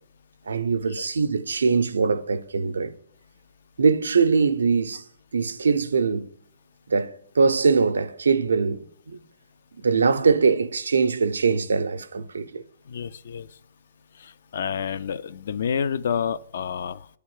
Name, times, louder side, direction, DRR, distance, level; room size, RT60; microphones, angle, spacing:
voice 1, 0.5-3.0 3.8-5.0 5.3-6.3 6.9-9.2 9.8-12.6, right 5 dB, 85° right, 0.5 m, -22 dB
voice 2, 12.9-13.5 14.1-17.1, left 7 dB, 65° left, 0.3 m, -29 dB
8.1 x 3.4 x 4.8 m
hypercardioid pair, 135°, 0 cm